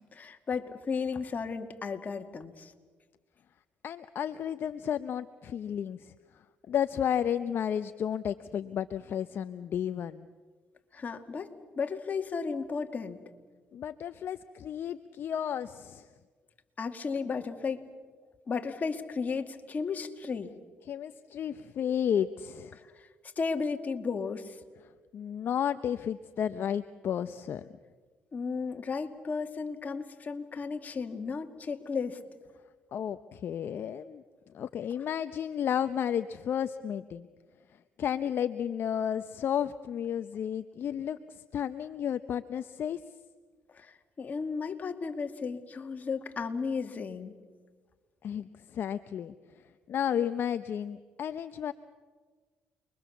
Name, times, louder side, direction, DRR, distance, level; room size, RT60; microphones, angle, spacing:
voice 1, 0.0-2.7 10.9-13.2 16.8-17.8 18.5-20.5 22.7-23.1 23.4-24.6 28.3-32.2 43.7-47.3, left 5 dB, 40° left, 5 dB, 2.3 m, -34 dB
voice 2, 3.8-6.1 6.7-10.3 13.7-16.1 20.9-22.8 25.1-27.7 32.9-34.2 34.5-37.3 38.0-43.0 48.2-51.7, left 9 dB, 60° left, 11 dB, 0.7 m, -32 dB
29.0 x 22.5 x 7.2 m, 1.4 s
cardioid pair, 80°, 4 cm